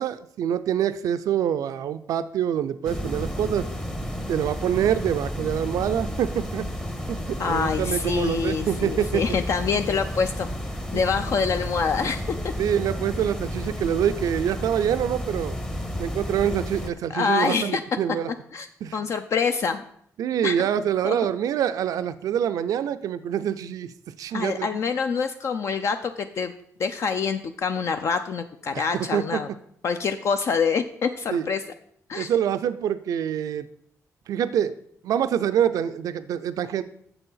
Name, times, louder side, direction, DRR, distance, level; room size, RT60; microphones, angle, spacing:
voice 1, 0.0-3.7 4.3-6.6 7.1-9.2 12.6-15.6 16.0-18.3 18.8-19.0 20.2-23.9 24.2-24.7 28.7-28.8 29.1-29.4 31.3-31.5 32.2-33.7 34.3-34.7 35.0-36.8, right 9 dB, 85° right, 12 dB, 0.4 m, -25 dB
sound 1, 2.8-16.9, equal, 10° left, 0.8 m, -32 dB
voice 2, 7.4-10.5 10.9-12.5 17.1-17.8 18.5-18.7 18.9-19.8 20.4-20.7 21.0-21.2 24.3-26.5 26.8-29.5 29.8-31.6 32.1-32.3, left 5 dB, 55° left, 8 dB, 0.5 m, -26 dB
7.0 x 6.9 x 5.5 m, 0.68 s
cardioid pair, 120°, 6 cm